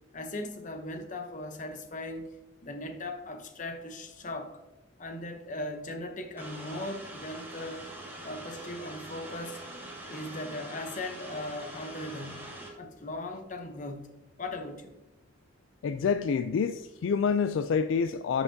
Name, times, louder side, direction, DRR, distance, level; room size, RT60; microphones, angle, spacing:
voice 1, 0.1-2.3 2.6-4.6 5.0-7.9 8.2-9.6 10.1-14.9, left 2 dB, 40° left, 0.8 m, -39 dB
sound 1, 6.4-12.7, right 1 dB, 10° right, 1.3 m, -43 dB
voice 2, 15.8-18.4, left 6 dB, 75° left, 0.3 m, -27 dB
11.0 x 5.8 x 2.7 m
head